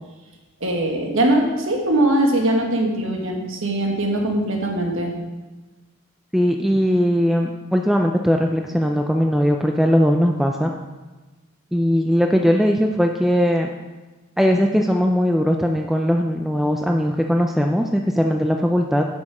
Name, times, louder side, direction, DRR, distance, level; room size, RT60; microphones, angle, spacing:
voice 1, 0.6-5.1, right 1 dB, 65° right, 1 dB, 1.6 m, -21 dB
voice 2, 6.3-10.7 11.7-13.7 14.4-19.1, equal, ahead, 2 dB, 0.4 m, -19 dB
10.5 x 6.2 x 4.8 m, 1.2 s
head